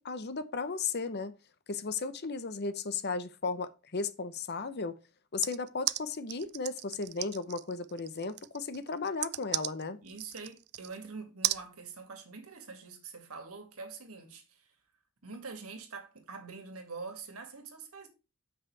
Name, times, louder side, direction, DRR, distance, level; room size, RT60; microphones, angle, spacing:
voice 1, 0.0-1.3 1.7-4.9 5.3-10.0, left 4 dB, 50° left, 0.8 m, -35 dB
sound 1, 5.4-11.0 11.4-11.6, right 16 dB, 50° right, 0.3 m, -35 dB
voice 2, 10.0-14.7 15.2-18.1, right 4 dB, 85° right, 2.2 m, -45 dB
7.5 x 5.8 x 4.7 m
head